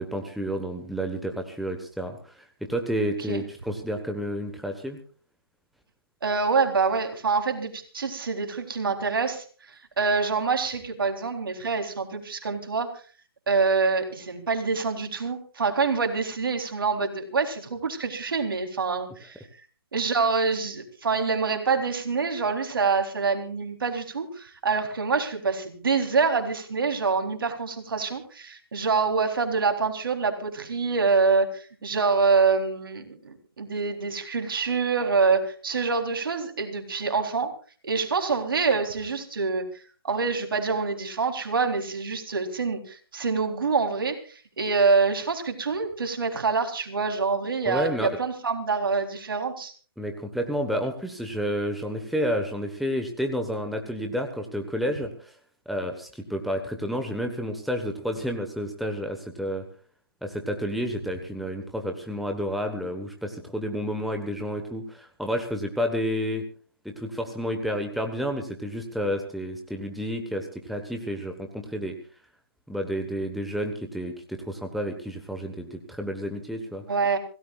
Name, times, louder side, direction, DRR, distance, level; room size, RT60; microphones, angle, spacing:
voice 1, 0.0-5.0 47.6-48.1 50.0-55.4 55.7-59.6 60.2-66.4 66.8-71.9 72.7-76.8, equal, ahead, 4 dB, 1.3 m, -30 dB
voice 2, 6.2-9.4 10.0-13.0 13.5-19.4 19.9-37.5 37.8-39.6 40.0-49.7 76.9-77.2, right 4 dB, 60° right, 5 dB, 3.7 m, -26 dB
26.5 x 17.5 x 2.4 m, 0.39 s
figure-of-eight pair, 145°, 13 cm